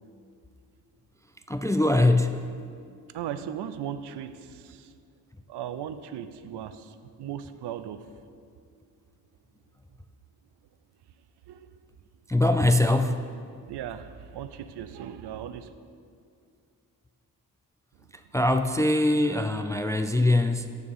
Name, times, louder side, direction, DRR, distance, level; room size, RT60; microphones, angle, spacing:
voice 1, 1.5-2.5 12.3-13.2 18.3-20.7, left 2 dB, 10° left, 8 dB, 0.3 m, -22 dB
voice 2, 3.1-4.9 5.5-8.1 11.5-11.7 13.7-15.7, right 9 dB, 80° right, 12 dB, 0.6 m, -37 dB
7.0 x 6.2 x 6.9 m, 2.3 s
cardioid pair, 80°, 41 cm